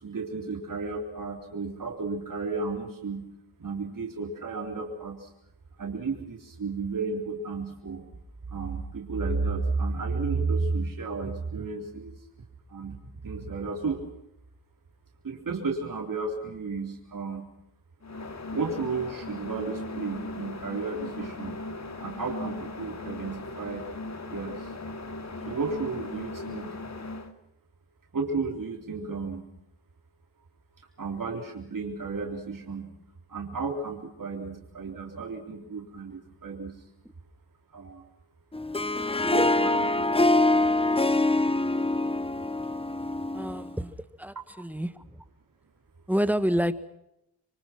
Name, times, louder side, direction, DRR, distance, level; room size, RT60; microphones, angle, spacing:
voice 1, 0.0-3.3 3.6-5.3 5.8-8.0 8.5-12.1 12.7-13.0 13.2-14.0 15.2-17.5 18.5-21.6 22.0-23.9 24.3-24.6 25.5-26.8 28.1-29.5 31.0-32.9 33.3-36.8 37.7-38.0 39.2-40.7, right 4 dB, 55° right, 1 dB, 3.9 m, -33 dB
sound 1, 18.0-27.3, left 2 dB, 45° left, 2.4 m, -38 dB
Harp, 38.5-43.8, left 2 dB, 15° left, 0.8 m, -24 dB
voice 2, 43.3-45.1 46.1-46.7, equal, 5° right, 12 dB, 1.6 m, -28 dB
27.0 x 24.5 x 6.0 m, 0.81 s
wide cardioid pair, 100°, 40 cm